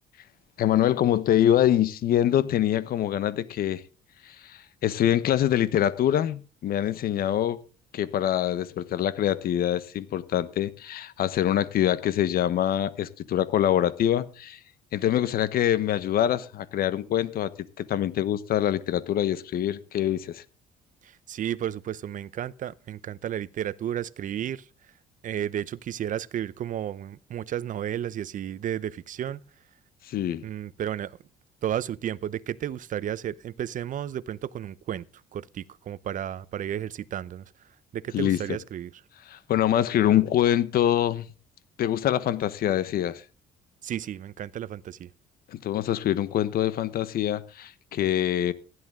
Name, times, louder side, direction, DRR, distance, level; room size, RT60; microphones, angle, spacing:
voice 1, 0.6-3.8 4.2-7.6 7.9-14.6 14.9-17.5 17.8-20.4 30.1-30.4 38.1-38.4 39.3-41.3 41.8-43.2 45.5-48.5, left 11 dB, 60° left, 1.2 m, -24 dB
voice 2, 21.0-24.7 25.2-29.4 30.4-31.2 31.6-35.1 35.3-37.5 37.9-38.9 43.8-45.1, right 10 dB, 50° right, 0.8 m, -32 dB
15.5 x 11.0 x 3.7 m
cardioid pair, 110°, 17 cm